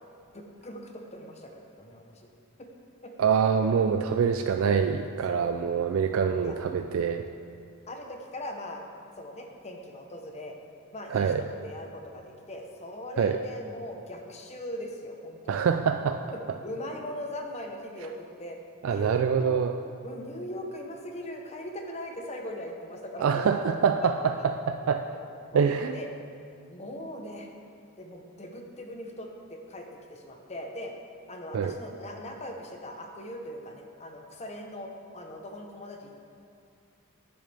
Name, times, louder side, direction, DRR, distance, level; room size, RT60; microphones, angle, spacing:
voice 1, 0.3-2.3 2.6-2.7 3.0-3.1 5.3-5.5 6.4-6.5 7.9-8.8 9.2-10.5 10.9-15.7 16.3-18.6 18.9-19.6 20.0-23.4 25.1-25.6 25.9-26.1 26.7-27.5 28.0-30.9 31.3-36.1, left 1 dB, 30° left, 2 dB, 0.9 m, -40 dB
voice 2, 3.2-7.3 11.1-11.4 13.2-13.4 15.5-16.2 16.5-16.6 18.8-19.7 23.2-25.0 25.5-26.0 31.5-31.7, right 6 dB, 60° right, 6 dB, 0.3 m, -25 dB
10.5 x 9.7 x 3.4 m, 2.4 s
head